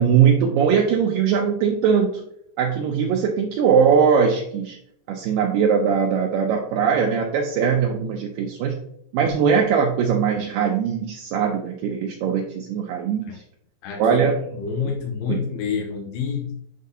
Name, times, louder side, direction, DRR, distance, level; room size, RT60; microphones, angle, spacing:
voice 1, 0.0-2.2 2.6-4.8 5.1-8.8 9.1-13.4 14.0-14.4 15.3-15.4, right 6 dB, 80° right, 1 dB, 2.0 m, -20 dB
voice 2, 13.8-16.5, left 6 dB, 85° left, 0 dB, 2.9 m, -28 dB
10.0 x 3.8 x 2.7 m, 0.72 s
omnidirectional pair, 4.5 m